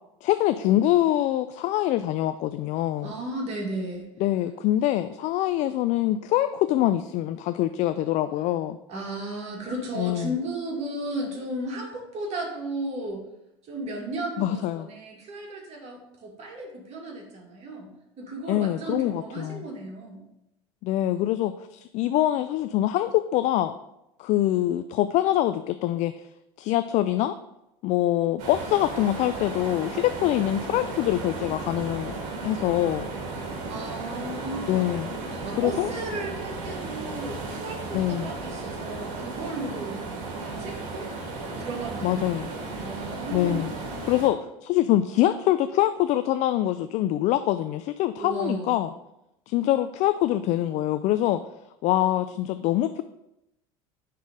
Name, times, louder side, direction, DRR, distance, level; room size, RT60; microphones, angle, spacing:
voice 1, 0.2-3.1 4.2-8.8 10.0-10.3 14.4-14.9 18.5-19.7 20.8-23.7 24.2-26.2 26.6-27.3 27.8-33.1 34.7-35.1 35.6-35.9 37.9-38.3 42.0-42.5 43.3-43.7 44.0-48.9 49.5-51.4 51.8-53.0, left 13 dB, 50° left, 11 dB, 0.4 m, -24 dB
voice 2, 3.0-4.1 8.9-13.2 13.7-17.9 18.2-20.2 33.6-34.9 35.3-40.0 40.4-41.1 41.6-43.8 48.2-48.8, right 1 dB, 45° right, -1 dB, 2.3 m, -34 dB
sound 1, 28.4-44.3, right 3 dB, 65° right, 1.7 m, -35 dB
9.8 x 3.7 x 3.7 m, 0.87 s
hypercardioid pair, 80°, 15 cm